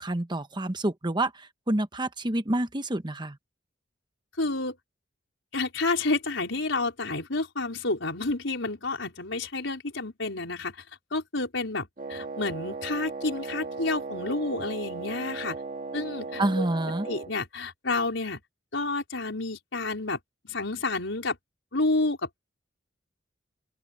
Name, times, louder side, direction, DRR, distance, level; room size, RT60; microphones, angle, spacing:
voice 1, 0.0-3.4 16.4-17.1, right 1 dB, 25° right, 1.1 m, -28 dB
voice 2, 4.4-4.8 5.5-10.8 11.1-15.6 15.9-16.7 17.0-18.4 18.7-20.2 20.4-21.4 21.7-22.4, left 3 dB, 90° left, 4.6 m, -30 dB
Wind instrument woodwind instrument, 12.0-17.3, right 4 dB, 45° right, 2.2 m, -37 dB
open air
head